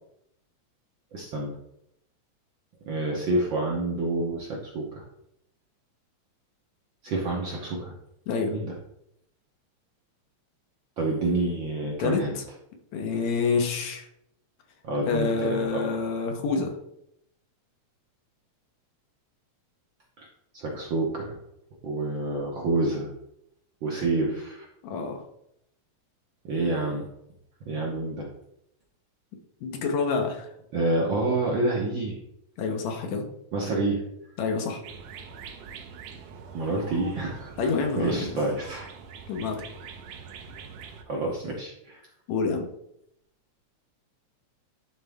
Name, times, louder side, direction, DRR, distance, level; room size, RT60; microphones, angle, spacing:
voice 1, 1.1-1.6 2.8-5.0 7.0-7.9 8.5-8.7 11.0-12.4 14.8-16.0 20.2-20.3 20.5-21.2 21.8-23.1 23.8-24.7 26.4-27.1 27.6-28.3 30.7-32.2 33.5-34.0 36.5-37.5 38.0-38.9 41.1-42.0, right 2 dB, 60° right, -2 dB, 1.4 m, -28 dB
voice 2, 12.0-12.4 12.9-14.1 15.0-16.7 24.8-25.2 29.6-30.5 32.6-33.2 34.4-34.8 37.6-38.5 39.3-39.6 42.3-42.7, left 4 dB, 75° left, 3 dB, 2.2 m, -27 dB
sound 1, 34.8-41.0, right 6 dB, 75° right, 1.9 m, -44 dB
11.0 x 4.0 x 3.5 m, 0.78 s
omnidirectional pair, 3.3 m